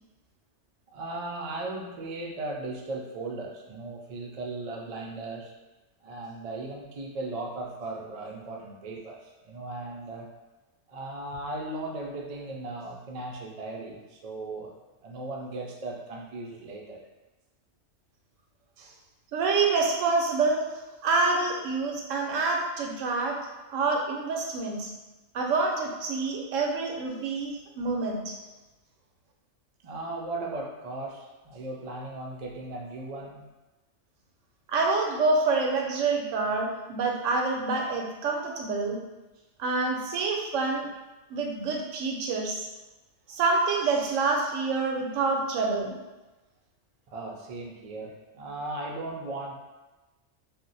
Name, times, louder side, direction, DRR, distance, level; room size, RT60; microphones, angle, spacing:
voice 1, 0.9-5.5 6.0-10.3 10.9-14.7 15.0-17.0 29.8-33.4 47.1-49.5, right 2 dB, 65° right, -1 dB, 0.3 m, -37 dB
voice 2, 19.3-20.6 21.0-23.4 23.7-24.9 25.3-28.3 34.7-39.0 39.6-40.9 41.3-42.7 43.3-46.0, right 3 dB, 85° right, 1 dB, 0.9 m, -27 dB
2.5 x 2.1 x 3.9 m, 1.1 s
omnidirectional pair, 1.3 m